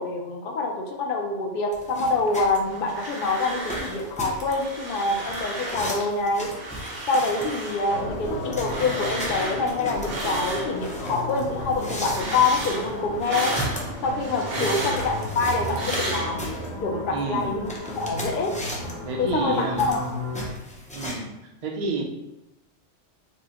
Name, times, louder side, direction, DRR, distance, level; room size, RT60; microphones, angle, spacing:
voice 1, 0.0-6.5 7.1-13.5 14.0-16.4 16.8-17.7 17.9-18.5 19.2-20.0, left 3 dB, 55° left, 1 dB, 0.6 m, -26 dB
sound 1, 1.7-21.1, equal, 10° left, 0.4 m, -37 dB
sound 2, 2.6-4.0 4.3-6.1 6.4-11.2 11.5-16.7, right 1 dB, 75° right, 1.3 m, -33 dB
sound 3, 7.9-20.5, left 1 dB, 70° left, 1.1 m, -34 dB
voice 2, 17.1-17.6 19.0-19.9 20.9-22.0, right 3 dB, 45° right, 1 dB, 0.6 m, -30 dB
5.3 x 2.0 x 2.9 m, 0.94 s
omnidirectional pair, 1.2 m